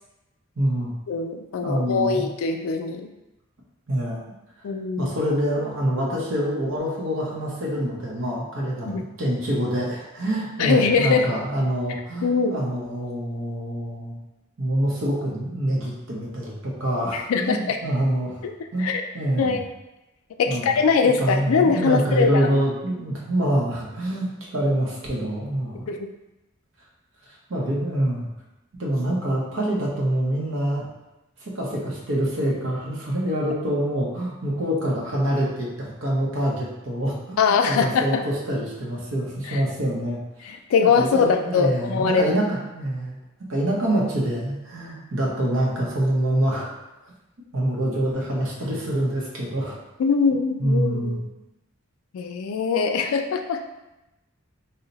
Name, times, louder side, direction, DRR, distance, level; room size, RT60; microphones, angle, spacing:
voice 1, 0.6-0.9 1.6-2.3 3.9-4.2 5.0-14.2 14.6-18.4 18.7-18.9 19.1-19.6 20.5-20.6 21.2-25.9 27.5-28.3 28.8-30.8 31.4-40.2 40.9-43.2 43.5-46.7 47.5-49.8 50.6-51.2, right 1 dB, 70° right, -3 dB, 0.8 m, -25 dB
voice 2, 1.1-3.1 4.6-5.2 8.8-9.0 10.6-11.3 12.2-12.6 17.1-17.8 18.4-18.5 18.8-19.0 19.4-19.6 20.4-22.5 25.9-26.1 37.4-38.2 39.5-39.6 40.4-42.3 50.0-51.2 52.1-53.6, left 5 dB, 80° left, 5 dB, 0.3 m, -22 dB
2.7 x 2.1 x 3.9 m, 0.97 s
head